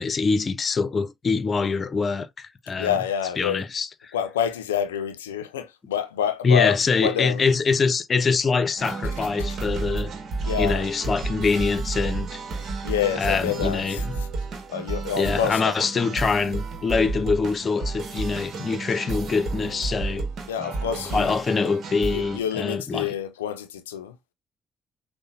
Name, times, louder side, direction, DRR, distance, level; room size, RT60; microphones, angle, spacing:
voice 1, 0.0-2.9 3.4-3.9 6.4-10.1 10.6-12.3 13.2-14.0 15.2-20.3 21.1-23.1, left 4 dB, 45° left, 0.6 m, -24 dB
voice 2, 2.8-3.7 4.1-7.4 9.1-9.5 10.4-10.9 12.8-14.3 14.7-15.8 20.5-21.3 22.1-24.2, left 9 dB, 85° left, 0.4 m, -28 dB
sound 1, 8.8-22.4, right 3 dB, 55° right, 1.1 m, -31 dB
6.4 x 2.1 x 2.7 m
hypercardioid pair, 45°, 0 cm